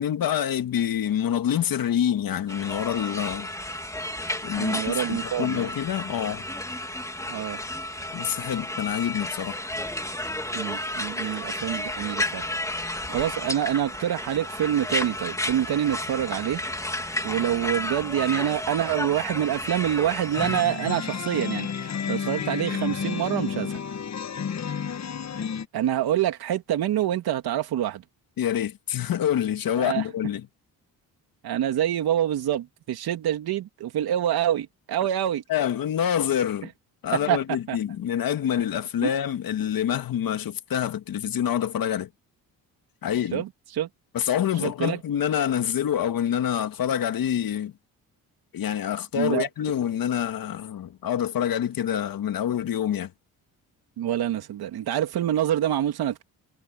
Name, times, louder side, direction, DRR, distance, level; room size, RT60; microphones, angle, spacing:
voice 1, 0.0-3.5 4.4-6.5 8.1-9.6 28.4-30.5 35.5-36.7 37.0-42.1 43.0-43.4 44.1-47.7 48.5-53.1, left 10 dB, 65° left, 2.0 m, -26 dB
sound 1, 2.5-20.6, left 1 dB, 10° left, 2.8 m, -32 dB
voice 2, 4.6-5.7 7.3-7.6 10.5-12.4 13.1-16.6 17.2-23.8 25.7-28.0 29.8-30.0 31.4-35.4 37.1-37.4 37.7-37.8 39.0-39.1 43.3-43.9 44.6-45.0 49.1-49.5 54.0-56.2, right 11 dB, 75° right, 3.0 m, -26 dB
sound 2, 20.4-25.7, left 7 dB, 45° left, 1.5 m, -31 dB
cardioid pair, 75°, 38 cm